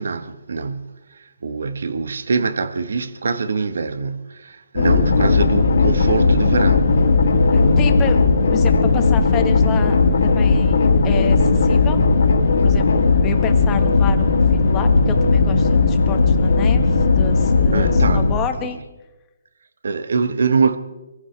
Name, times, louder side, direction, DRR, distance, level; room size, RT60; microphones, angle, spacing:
voice 1, 0.0-6.9 17.7-18.3 18.6-18.7 19.8-20.8, right 5 dB, 70° right, 1.2 m, -24 dB
sound 1, 4.8-18.4, left 4 dB, 70° left, 2.2 m, -16 dB
voice 2, 7.5-8.2 8.5-10.0 10.2-12.0 12.6-12.9 13.2-18.8, left 9 dB, 15° left, 1.4 m, -29 dB
25.0 x 15.0 x 3.4 m
hypercardioid pair, 160°, 0 cm